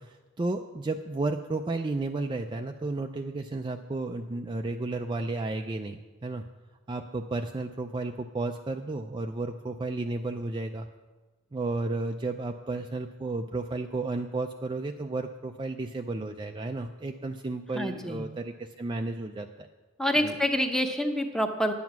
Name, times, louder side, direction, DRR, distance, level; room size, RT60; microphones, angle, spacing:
voice 1, 0.0-6.5 6.9-10.9 11.5-19.7 20.2-20.4, right 2 dB, 20° right, 5 dB, 0.4 m, -33 dB
voice 2, 17.7-18.2 20.0-21.7, equal, ahead, 5 dB, 0.8 m, -27 dB
10.5 x 9.2 x 6.0 m, 1.2 s
head